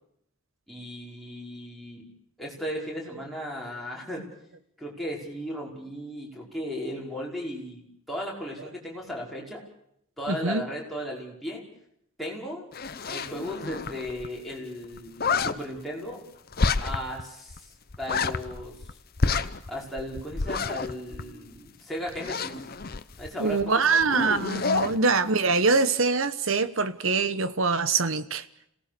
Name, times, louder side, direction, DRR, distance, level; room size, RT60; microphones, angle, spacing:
voice 1, 0.7-2.1 2.4-4.3 4.8-9.6 10.2-11.6 12.2-12.7 13.1-16.2 16.8-17.7 18.0-18.7 19.7-22.6 23.2-24.2, equal, ahead, 5.5 m, -36 dB
voice 2, 10.3-10.7 23.4-28.5, right 4 dB, 65° right, 1.2 m, -24 dB
sound 1, 12.7-14.3 14.5-14.6 14.8-15.5 16.5-17.2 17.5-17.6 17.9-18.9 19.2-21.7 22.1-23.6 23.9-25.0, left 4 dB, 45° left, 0.9 m, -29 dB
27.0 x 18.0 x 6.9 m
head